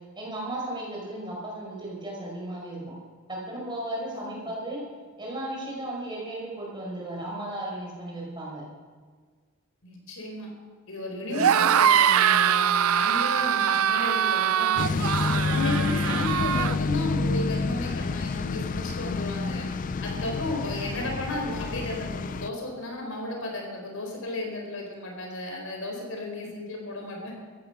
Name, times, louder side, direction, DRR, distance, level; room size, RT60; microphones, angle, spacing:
voice 1, 0.2-2.8 3.3-4.8 5.2-8.6 11.2-11.6, right 1 dB, 20° right, -3 dB, 5.3 m, -35 dB
voice 2, 4.1-4.5 9.8-10.5 10.9-15.1 15.4-27.3, left 2 dB, 70° left, 1 dB, 4.4 m, -34 dB
sound 1, 11.3-16.8, right 9 dB, 80° right, 0.4 m, -23 dB
sound 2, 14.8-22.5, left 3 dB, 40° left, 0.4 m, -29 dB
15.0 x 14.5 x 6.0 m, 1.5 s
head